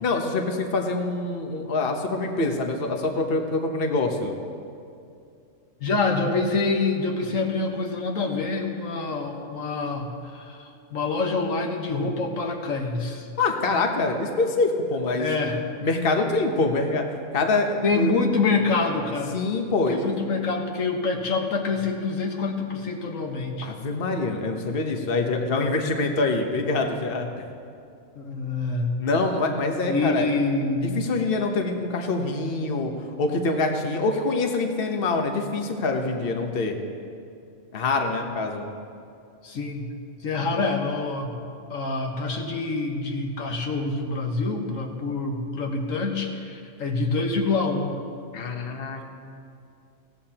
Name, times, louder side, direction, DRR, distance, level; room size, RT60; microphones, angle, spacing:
voice 1, 0.0-4.4 13.4-15.5 15.8-17.1 17.3-18.1 19.3-20.1 23.6-27.3 29.0-30.3 31.0-32.9 33.2-36.8 37.7-38.7 48.3-49.0, left 3 dB, 45° left, 3 dB, 1.2 m, -25 dB
voice 2, 5.8-13.3 15.2-15.6 17.8-19.3 19.9-23.7 26.6-26.7 28.2-28.9 29.9-31.0 39.4-39.9 40.2-41.3 41.7-48.0, left 3 dB, 85° left, 1 dB, 1.7 m, -26 dB
21.0 x 16.0 x 2.9 m, 2.5 s
omnidirectional pair, 1.4 m